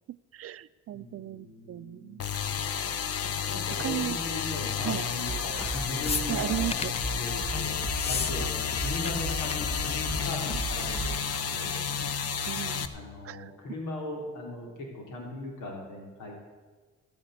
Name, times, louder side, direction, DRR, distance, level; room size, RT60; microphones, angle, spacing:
voice 1, 0.3-2.2 3.8-4.2 4.8-5.1 6.3-7.0 12.5-12.9 13.2-13.5, right 12 dB, 50° right, 16 dB, 0.5 m, -35 dB
voice 2, 0.9-2.7 3.5-6.6 7.2-7.8 8.1-11.8 12.9-16.4, left 2 dB, 85° left, -1 dB, 3.7 m, -39 dB
sound 1, 2.2-12.9, left 7 dB, 50° left, 0.9 m, -31 dB
sound 2, 5.3-11.2, right 3 dB, 10° right, 1.2 m, -37 dB
sound 3, 6.0-7.0 7.9-8.3 8.6-9.1 9.4-9.5 9.8-10.2 11.1-11.2, left 5 dB, 20° left, 0.4 m, -33 dB
13.5 x 8.7 x 8.1 m, 1.4 s
cardioid pair, 90°, 30 cm